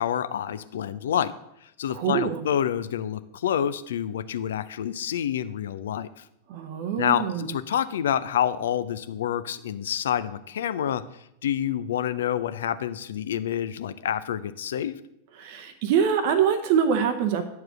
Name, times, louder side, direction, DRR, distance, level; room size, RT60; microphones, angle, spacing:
voice 1, 0.0-1.3 1.6-6.2 7.0-11.0 11.4-15.0, left 9 dB, 60° left, 14 dB, 0.5 m, -28 dB
voice 2, 1.9-2.5 6.5-7.5 15.3-17.5, right 7 dB, 50° right, 8 dB, 0.7 m, -24 dB
9.0 x 4.6 x 6.1 m, 0.80 s
figure-of-eight pair, 90°, 0 cm